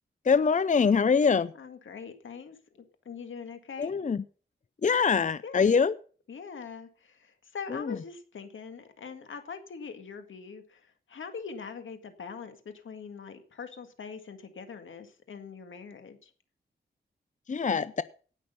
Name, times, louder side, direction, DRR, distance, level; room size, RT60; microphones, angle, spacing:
voice 1, 0.2-1.5 3.8-4.2 4.8-6.0 7.7-8.0 17.5-18.0, left 5 dB, 40° left, 15 dB, 0.6 m, -24 dB
voice 2, 1.6-4.0 5.4-5.8 6.3-16.3, left 6 dB, 85° left, 7 dB, 1.9 m, -43 dB
17.5 x 6.4 x 5.4 m, 0.40 s
cardioid pair, 65°, 20 cm